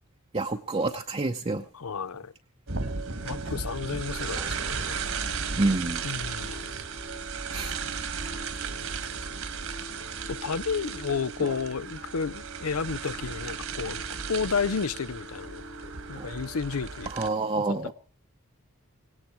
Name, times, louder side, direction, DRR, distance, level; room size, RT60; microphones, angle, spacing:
voice 1, 0.3-1.6 4.4-4.5 5.6-6.0 7.5-7.7 11.4-11.6 16.2-16.3 17.1-17.9, right 2 dB, 25° right, 0.8 m, -28 dB
voice 2, 1.7-2.3 3.2-5.0 6.0-6.7 10.3-15.6 16.1-17.3, left 5 dB, 85° left, 0.7 m, -32 dB
sound 1, 2.7-17.3, right 5 dB, 65° right, 1.9 m, -35 dB
18.0 x 17.5 x 4.6 m
head